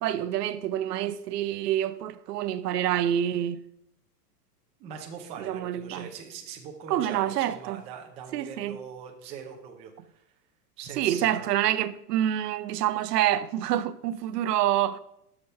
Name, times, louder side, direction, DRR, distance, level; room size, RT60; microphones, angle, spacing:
voice 1, 0.0-3.6 5.4-6.1 6.9-7.8 8.3-8.8 11.0-15.0, right 11 dB, 75° right, 0.6 m, -27 dB
voice 2, 4.8-10.1 10.8-11.5, right 7 dB, 15° right, 0.4 m, -41 dB
6.7 x 6.0 x 5.3 m
supercardioid pair, 150°, 48 cm